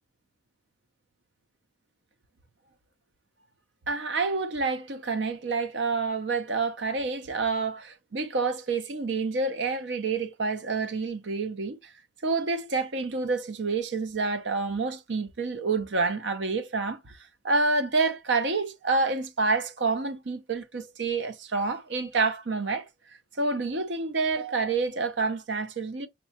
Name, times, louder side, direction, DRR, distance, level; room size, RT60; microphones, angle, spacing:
voice 1, 3.9-11.8 12.2-17.2 17.4-22.9 23.4-26.1, right 4 dB, 85° right, 0.7 m, -28 dB
5.2 x 2.2 x 2.8 m
head